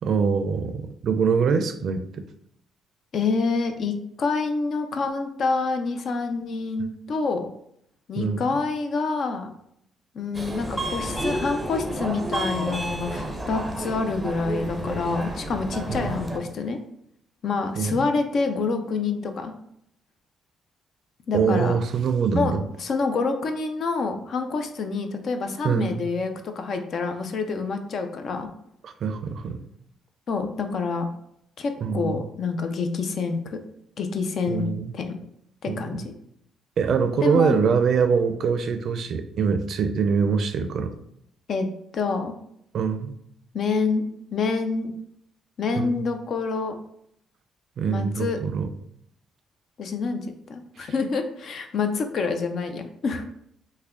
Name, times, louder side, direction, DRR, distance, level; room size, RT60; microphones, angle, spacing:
voice 1, 0.0-2.2 8.2-8.4 15.9-16.2 17.8-18.1 21.3-22.6 25.6-26.0 28.8-29.6 31.8-32.2 34.5-34.9 35.7-36.0 36.8-40.9 42.7-43.2 45.8-46.0 47.8-48.7 50.8-50.9, right 6 dB, 65° right, 8 dB, 0.4 m, -24 dB
voice 2, 3.1-7.5 8.1-9.5 10.1-16.8 17.4-19.5 21.3-21.8 22.3-28.5 30.3-31.1 31.6-33.6 34.0-34.6 34.9-35.1 35.6-36.1 37.2-37.6 41.5-41.7 41.9-42.3 43.5-44.0 44.3-44.9 45.6-46.8 47.9-48.4 49.8-50.2 50.5-53.2, left 4 dB, 60° left, 6 dB, 0.5 m, -27 dB
Subway metro underground, 10.3-16.4, right 1 dB, 10° right, 0.6 m, -30 dB
3.4 x 2.2 x 3.5 m, 0.73 s
cardioid pair, 90°, 0 cm